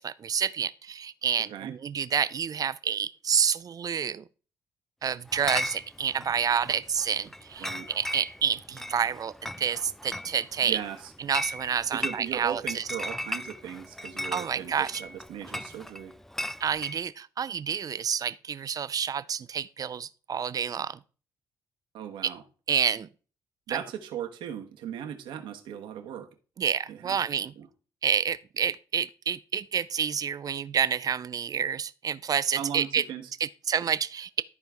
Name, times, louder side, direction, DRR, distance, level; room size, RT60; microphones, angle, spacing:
voice 1, 0.0-4.2 5.0-10.8 11.2-12.8 14.3-15.0 16.6-21.0 22.2-22.3 22.7-23.1 23.7-23.8 26.6-27.5 28.0-33.0 33.4-34.4, right 7 dB, 45° right, 0.5 m, -29 dB
Chatter / Chink clink, 5.3-17.0, left 1 dB, 5° left, 0.4 m, -37 dB
voice 2, 10.6-11.1 11.9-16.1 21.9-22.4 23.7-26.3 26.9-27.2 27.6-27.7 32.5-33.3, right 9 dB, 75° right, 1.1 m, -37 dB
13.0 x 4.6 x 3.4 m
hypercardioid pair, 50°, 9 cm